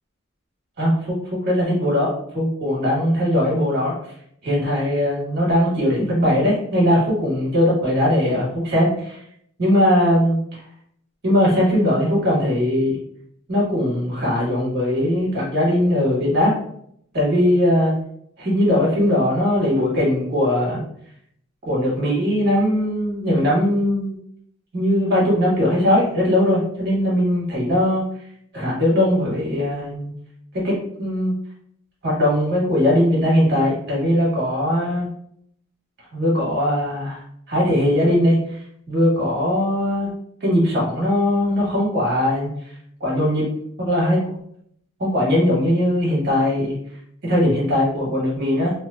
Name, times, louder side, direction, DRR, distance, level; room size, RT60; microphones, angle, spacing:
voice 1, 0.8-1.1 1.4-3.9 4.4-9.2 9.6-10.6 11.2-13.0 13.5-16.5 17.1-17.9 18.4-20.8 21.6-24.2 24.7-28.0 28.5-30.1 30.6-30.7 31.0-31.3 32.0-35.1 36.1-37.2 37.5-38.6 38.9-40.1 40.4-42.5 43.0-43.4 43.8-44.2 45.0-46.7 47.2-48.7, left 1 dB, 50° right, -5 dB, 1.3 m, -19 dB
3.0 x 2.0 x 2.3 m, 0.68 s
head